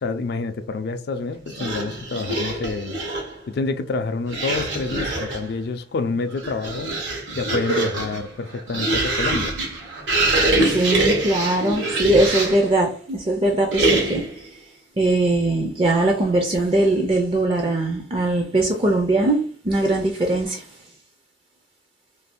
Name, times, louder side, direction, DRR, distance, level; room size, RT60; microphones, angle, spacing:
voice 1, 0.0-3.0 3.5-7.0 7.3-9.5, left 3 dB, 60° left, 0.3 m, -28 dB
sound 1, 1.5-3.4 4.3-5.5 6.2-12.7 13.7-14.4, right 2 dB, 75° right, 1.0 m, -24 dB
voice 2, 10.6-14.5 15.0-19.4 19.6-20.6, right 2 dB, 30° right, 0.4 m, -21 dB
2.6 x 2.3 x 3.4 m
head